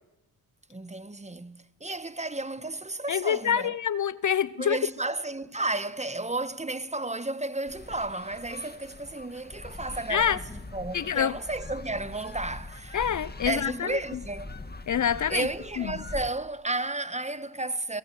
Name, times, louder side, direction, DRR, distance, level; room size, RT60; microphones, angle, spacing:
voice 1, 0.7-3.7 4.6-10.4 10.7-13.0 13.5-14.5 15.3-18.0, right 2 dB, 15° right, 1.4 m, -33 dB
voice 2, 3.1-4.8 10.1-10.4 10.9-11.4 12.9-14.0 14.9-15.5 15.8-16.0, left 8 dB, 45° left, 0.6 m, -26 dB
sound 1, 7.7-16.3, left 2 dB, 20° left, 2.0 m, -42 dB
23.5 x 16.5 x 7.5 m
supercardioid pair, 45°, 42 cm